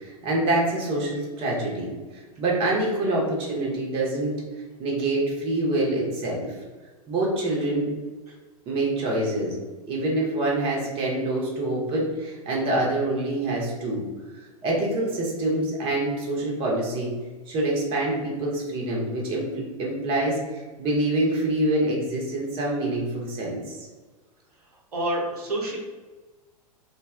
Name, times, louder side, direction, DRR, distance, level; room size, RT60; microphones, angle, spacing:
voice 1, 0.0-4.4 4.8-6.5 7.1-7.9 8.7-9.6 9.9-14.0 14.3-17.1 17.5-20.4 20.8-23.8, right 1 dB, 25° right, -3 dB, 0.7 m, -26 dB
voice 2, 24.9-25.8, right 1 dB, 75° right, -3 dB, 0.6 m, -27 dB
2.6 x 2.0 x 2.3 m, 1.3 s
figure-of-eight pair, 95°, 20 cm